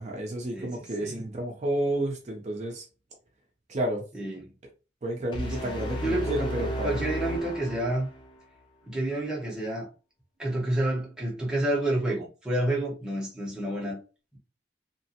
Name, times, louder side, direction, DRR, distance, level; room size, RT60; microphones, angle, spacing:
voice 1, 0.0-2.8 3.7-4.0 5.0-7.0, right 1 dB, 40° right, 0.5 m, -31 dB
voice 2, 4.1-4.5 5.6-5.7 6.0-8.1 8.8-9.9 10.4-14.0, right 1 dB, 5° right, 0.8 m, -29 dB
sound 1, 5.3-8.3, equal, 25° left, 0.6 m, -33 dB
2.9 x 2.1 x 2.8 m
head